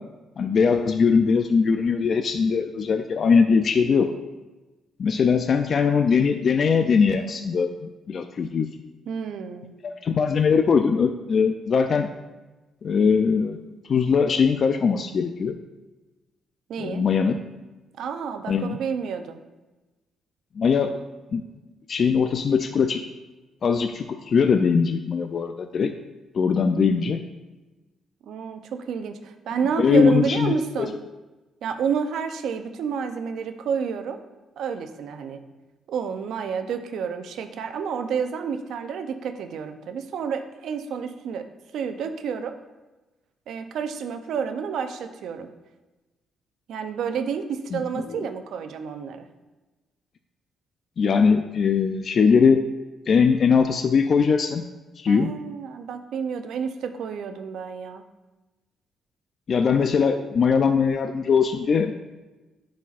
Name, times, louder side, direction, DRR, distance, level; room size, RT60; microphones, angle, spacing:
voice 1, 0.4-4.1 5.0-7.7 8.1-8.7 9.8-12.1 12.8-13.6 13.9-15.6 16.8-17.4 18.5-18.8 20.6-21.0 21.3-21.4 21.9-23.0 23.6-25.9 26.3-27.2 29.8-30.9 47.7-48.0 51.0-52.6 53.1-54.6 55.0-55.3 59.5-62.0, left 5 dB, 50° left, 7 dB, 0.4 m, -21 dB
voice 2, 9.1-9.7 16.7-17.0 18.0-19.4 28.3-30.9 31.6-34.2 34.6-35.4 35.9-41.5 41.7-42.6 43.5-45.5 46.7-49.3 55.1-58.0, right 6 dB, 75° right, 7 dB, 0.5 m, -29 dB
11.0 x 4.2 x 2.5 m, 1.2 s
cardioid pair, 90°, 0 cm